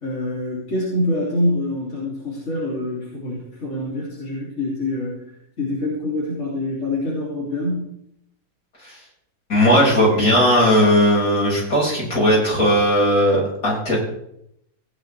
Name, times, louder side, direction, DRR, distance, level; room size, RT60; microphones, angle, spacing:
voice 1, 0.0-5.3 5.6-7.9, left 1 dB, 45° left, -6 dB, 3.6 m, -25 dB
voice 2, 9.5-14.0, equal, 65° left, -6 dB, 6.8 m, -17 dB
17.0 x 10.5 x 3.5 m, 0.75 s
omnidirectional pair, 1.7 m